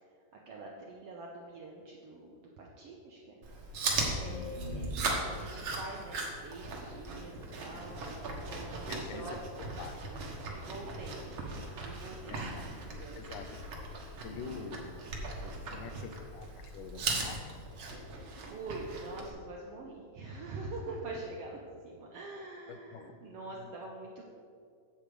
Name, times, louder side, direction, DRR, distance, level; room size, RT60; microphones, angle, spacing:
voice 1, 0.5-3.4 4.2-8.0 8.5-9.5 10.5-13.4 15.7-15.9 18.4-24.4, right 2 dB, 75° right, -1 dB, 1.4 m, -45 dB
Chewing mastication, 3.4-19.3, right 3 dB, 55° right, 1.6 m, -38 dB
voice 2, 8.9-10.0 12.3-14.9 15.4-17.6 22.7-23.2 23.6-23.7, left 6 dB, 85° left, 8 dB, 2.3 m, -46 dB
8.8 x 7.6 x 5.0 m, 2.3 s
omnidirectional pair, 3.7 m